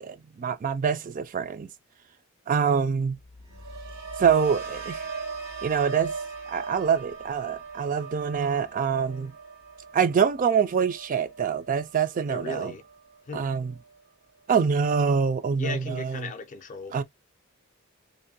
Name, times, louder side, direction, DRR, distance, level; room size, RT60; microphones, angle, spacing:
voice 1, 0.0-1.7 2.5-3.2 4.2-5.0 5.6-6.1 6.5-9.3 9.9-12.7 13.3-13.7 14.5-16.2 16.9-17.0, right 6 dB, 40° right, 0.3 m, -25 dB
sound 1, 3.1-13.2 13.6-14.0, right 4 dB, 85° right, 1.1 m, -39 dB
voice 2, 12.3-12.8 13.3-13.5 15.6-17.0, left 4 dB, 35° left, 0.4 m, -36 dB
2.6 x 2.1 x 2.6 m
head